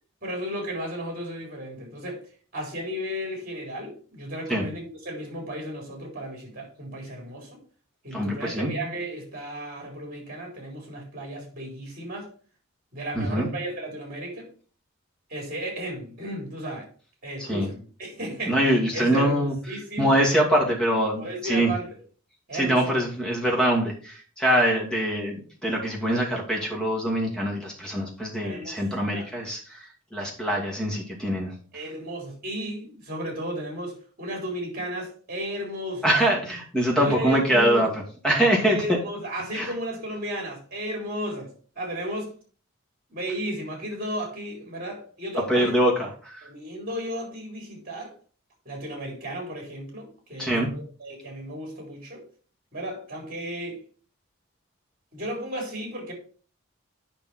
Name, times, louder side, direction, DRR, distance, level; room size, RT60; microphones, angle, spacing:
voice 1, 0.2-2.2 2.5-7.6 8.0-12.3 12.9-14.5 15.3-16.9 17.2-20.2 21.1-21.9 22.5-22.8 28.4-29.3 31.7-36.1 37.0-38.0 38.6-42.3 43.1-45.7 46.4-48.1 48.7-52.2 52.7-53.8 55.1-56.1, equal, 45° right, 4.1 m, -34 dB
voice 2, 8.1-8.7 13.1-13.5 17.5-17.7 18.5-19.5 20.0-21.7 22.5-29.8 30.1-31.5 36.0-37.9 38.2-38.8 39.5-39.7 45.5-46.5 50.4-50.7, right 1 dB, 5° left, 2.4 m, -24 dB
8.8 x 5.8 x 4.3 m
head